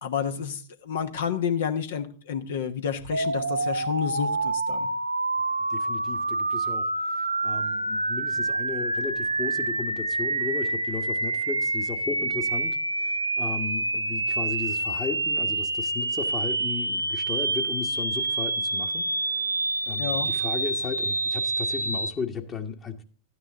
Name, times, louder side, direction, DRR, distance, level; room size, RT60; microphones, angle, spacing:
voice 1, 0.0-4.9 20.0-20.3, left 7 dB, 60° left, 7 dB, 1.2 m, -30 dB
sound 1, 3.1-22.1, right 2 dB, 85° right, 0.6 m, -27 dB
voice 2, 5.7-6.9 7.4-19.0 19.9-23.0, left 6 dB, 25° left, 4 dB, 1.4 m, -35 dB
13.5 x 9.6 x 3.7 m, 0.38 s
figure-of-eight pair, 90°, 0 cm